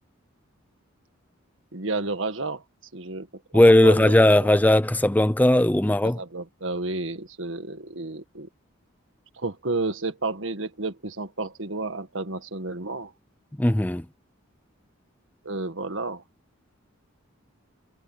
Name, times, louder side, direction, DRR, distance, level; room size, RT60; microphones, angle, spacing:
voice 1, 1.7-2.6 2.9-3.3 3.8-4.1 6.2-8.5 9.3-13.1 15.4-16.2, right 3 dB, 70° right, 1.8 m, -31 dB
voice 2, 3.5-6.2 13.6-14.1, left 1 dB, 10° left, 0.5 m, -18 dB
head